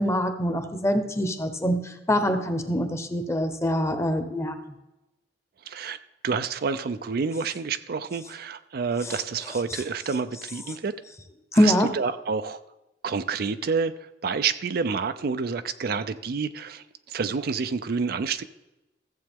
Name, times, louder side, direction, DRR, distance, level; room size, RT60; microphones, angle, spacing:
voice 1, 0.0-4.6 9.0-9.2 9.7-9.8 11.6-11.9, equal, 15° left, 8 dB, 0.9 m, -24 dB
voice 2, 5.7-6.0 6.2-10.9 11.6-12.6 13.0-13.9 14.2-18.4, right 5 dB, 60° right, 11 dB, 0.5 m, -28 dB
14.5 x 7.6 x 3.6 m, 0.98 s
head